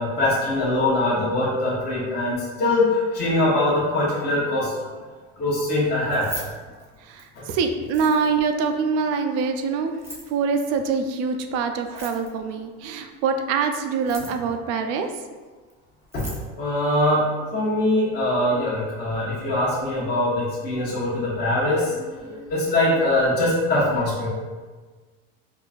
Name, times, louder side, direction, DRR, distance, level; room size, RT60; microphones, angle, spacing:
voice 1, 0.0-5.0 5.4-6.3 7.3-7.4 16.1-16.3 16.6-24.3, left 1 dB, 35° left, -8 dB, 0.8 m, -22 dB
Keys jangling, 6.0-7.4 7.8-8.5 9.9-10.4 11.8-12.5 13.9-14.5 15.7-15.8 16.0-16.5, right 1 dB, 10° right, 0.7 m, -39 dB
voice 2, 7.0-9.9 10.3-15.1, right 5 dB, 55° right, 6 dB, 0.4 m, -24 dB
4.6 x 2.5 x 2.4 m, 1.4 s
cardioid pair, 140°, 30 cm